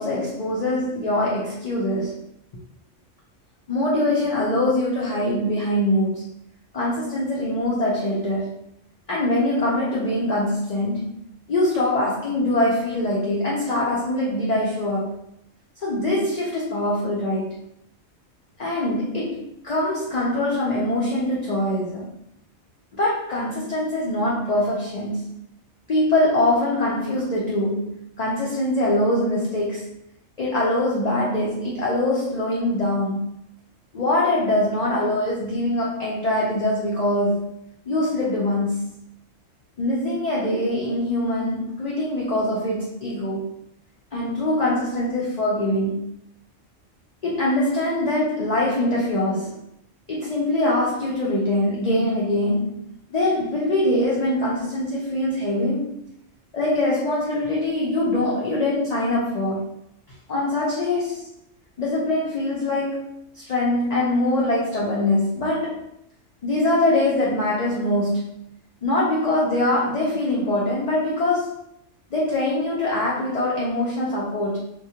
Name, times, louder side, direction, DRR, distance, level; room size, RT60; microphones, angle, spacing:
voice 1, 0.0-2.2 3.7-6.2 6.7-8.5 9.1-11.1 11.5-15.1 15.8-17.6 18.6-22.1 22.9-25.4 25.9-29.9 30.4-33.3 33.9-37.5 37.9-38.8 39.8-43.5 44.1-46.0 47.2-49.6 50.1-52.8 53.1-55.9 56.5-59.7 60.3-61.3 61.8-65.9 66.4-68.4 68.8-71.7 72.1-74.6, left 1 dB, 70° left, -5 dB, 0.3 m, -23 dB
2.2 x 2.1 x 2.7 m, 0.75 s
omnidirectional pair, 1.3 m